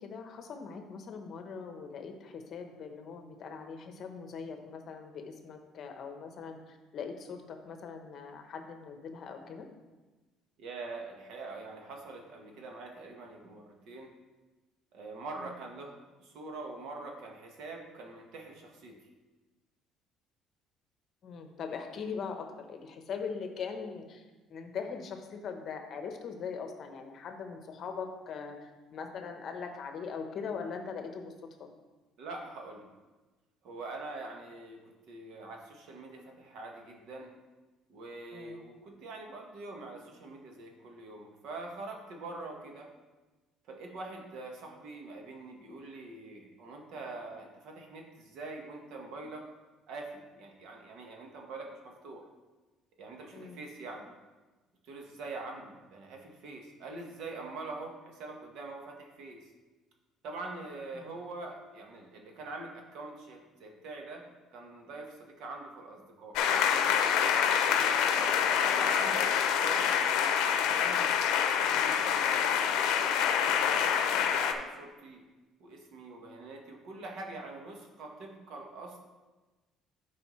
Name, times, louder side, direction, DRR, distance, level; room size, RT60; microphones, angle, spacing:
voice 1, 0.0-6.6 6.9-9.7 15.4-15.5 21.2-24.2 24.5-28.6 28.9-31.3 31.6-31.7 38.3-38.6 53.3-53.6 60.9-61.1 67.7-67.9, left 5 dB, 45° left, 5 dB, 0.9 m, -41 dB
voice 2, 10.6-14.1 14.9-18.9 32.2-32.8 33.6-34.8 35.1-37.3 37.9-42.9 43.7-49.5 49.9-52.2 53.0-54.1 54.8-59.4 60.2-64.2 64.5-66.4 67.8-69.9 70.6-71.2 71.5-72.3 73.4-75.2 75.6-79.0, right 3 dB, 65° right, 1 dB, 1.4 m, -44 dB
sound 1, 66.3-74.5, left 8 dB, 80° left, 0.6 m, -26 dB
10.5 x 4.9 x 3.2 m, 1.2 s
cardioid pair, 135°, 0 cm